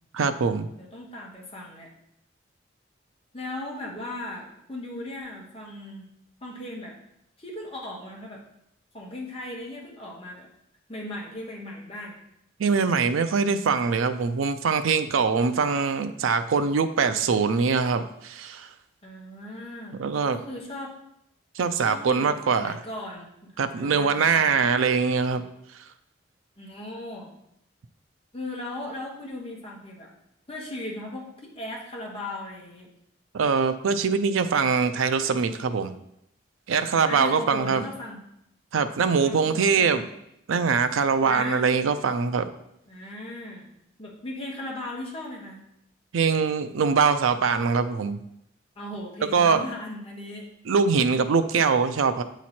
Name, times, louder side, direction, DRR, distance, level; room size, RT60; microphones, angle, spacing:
voice 1, 0.1-0.7 12.6-18.7 20.0-20.4 21.6-22.8 23.6-25.4 33.3-35.9 36.7-37.8 38.7-40.0 40.5-42.5 46.1-48.2 49.3-49.6 50.7-52.2, right 5 dB, 90° right, 9 dB, 0.4 m, -23 dB
voice 2, 0.8-1.9 3.3-6.1 6.4-6.9 7.4-8.4 8.9-10.5 10.9-12.1 19.0-20.0 20.3-20.9 21.8-24.6 26.6-27.3 28.3-30.1 30.5-32.9 37.0-38.2 39.2-40.0 41.2-41.7 42.9-43.7 44.0-45.6 48.8-50.5, left 1 dB, 30° left, -2 dB, 1.2 m, -37 dB
8.3 x 3.0 x 4.2 m, 0.79 s
head